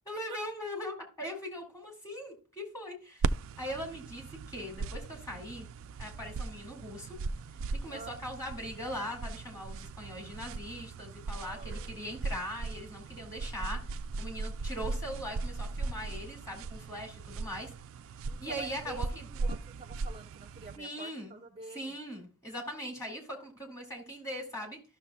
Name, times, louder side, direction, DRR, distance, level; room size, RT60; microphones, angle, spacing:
voice 1, 0.1-3.3 3.6-5.7 6.0-7.2 7.8-17.7 18.4-19.3 20.8-21.4 21.7-24.8, equal, 15° left, 1 dB, 2.4 m, -40 dB
sound 1, 3.2-20.8, right 3 dB, 60° right, 0.3 m, -38 dB
voice 2, 11.5-12.2 18.3-19.0 19.3-22.0, right 3 dB, 25° right, 6 dB, 0.7 m, -47 dB
13.5 x 6.3 x 2.2 m, 0.34 s
head